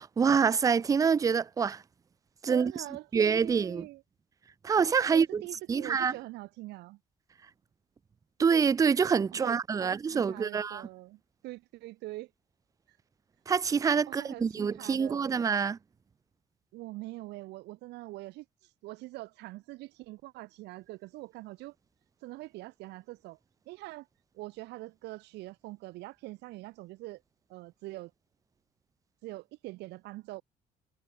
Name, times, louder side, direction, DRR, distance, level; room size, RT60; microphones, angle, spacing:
voice 1, 0.0-1.8 2.4-2.7 3.1-3.9 4.6-5.4 5.7-6.1 8.4-10.9 13.5-15.8, right 6 dB, 20° right, 0.4 m, -26 dB
voice 2, 2.5-4.0 5.1-7.0 9.3-12.3 12.9-13.0 14.1-15.3 16.7-21.8 22.2-23.4 23.7-24.1 24.3-27.2 27.5-28.1 29.2-30.4, right 19 dB, 90° right, 3.6 m, -44 dB
cardioid pair, 110°, 17 cm